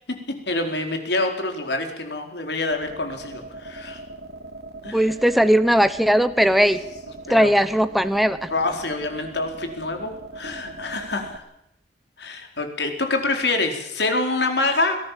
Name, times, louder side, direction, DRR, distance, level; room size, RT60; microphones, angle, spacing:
voice 1, 0.5-4.0 4.8-5.1 5.4-5.5 6.5-6.6 7.3-7.5 8.5-11.4 12.2-15.0, left 2 dB, 75° left, 5 dB, 4.4 m, -26 dB
sound 1, 2.7-11.4, right 2 dB, 70° right, 2.5 m, -39 dB
voice 2, 4.9-6.8 7.3-8.5, equal, ahead, 11 dB, 0.9 m, -18 dB
22.5 x 17.5 x 7.5 m, 0.79 s
head